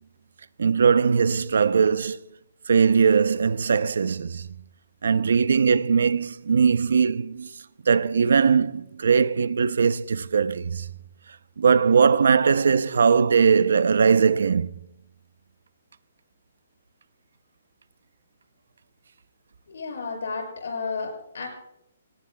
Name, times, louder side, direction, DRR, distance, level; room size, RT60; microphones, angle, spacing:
voice 1, 0.6-2.2 2.7-4.5 5.0-7.5 7.9-10.9 11.6-14.7, right 6 dB, 70° right, 0.6 m, -20 dB
voice 2, 19.7-21.5, left 4 dB, 65° left, 7.2 m, -32 dB
27.5 x 17.5 x 2.3 m
hypercardioid pair, 180°, 0 cm